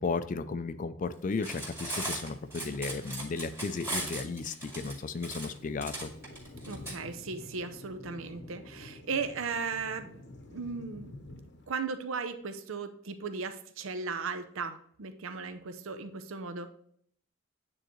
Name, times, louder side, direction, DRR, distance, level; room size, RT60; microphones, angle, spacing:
voice 1, 0.0-6.1, left 4 dB, 40° left, 12 dB, 0.4 m, -34 dB
Cutlery silverware, 1.3-6.9, right 1 dB, 15° right, 1.8 m, -38 dB
Thunder, 5.4-11.7, left 1 dB, 55° left, 0.8 m, -49 dB
voice 2, 6.7-11.1 11.7-16.7, right 5 dB, 75° right, 9 dB, 0.6 m, -36 dB
9.1 x 3.8 x 3.1 m, 0.65 s
head